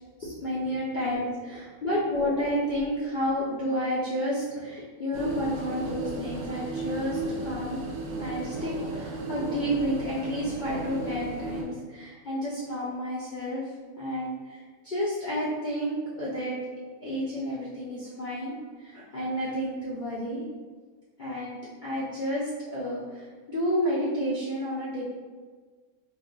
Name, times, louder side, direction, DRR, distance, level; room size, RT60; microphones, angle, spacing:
voice 1, 0.2-7.8 8.2-13.6 14.0-16.6 17.0-20.4 21.2-25.0, equal, 80° left, -6 dB, 0.4 m, -31 dB
sound 1, 5.1-11.6, right 2 dB, 65° right, 0.7 m, -34 dB
2.4 x 2.3 x 3.7 m, 1.4 s
omnidirectional pair, 1.5 m